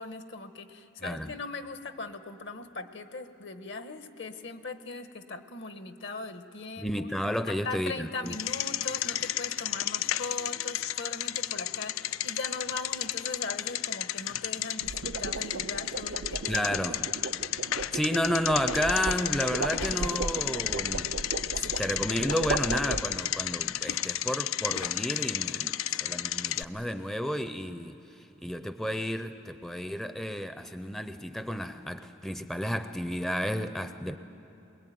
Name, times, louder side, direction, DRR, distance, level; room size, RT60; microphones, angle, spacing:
voice 1, 0.0-7.1 7.5-16.7, left 3 dB, 60° left, 9 dB, 1.2 m, -39 dB
voice 2, 1.0-1.3 6.8-8.4 16.5-17.0 17.9-34.2, equal, ahead, 9 dB, 0.5 m, -32 dB
Bicycle, 8.3-26.6, left 12 dB, 85° left, 0.5 m, -33 dB
sound 1, 9.1-9.4 14.6-23.5, right 4 dB, 65° right, 0.5 m, -36 dB
22.0 x 21.5 x 9.3 m, 2.9 s
head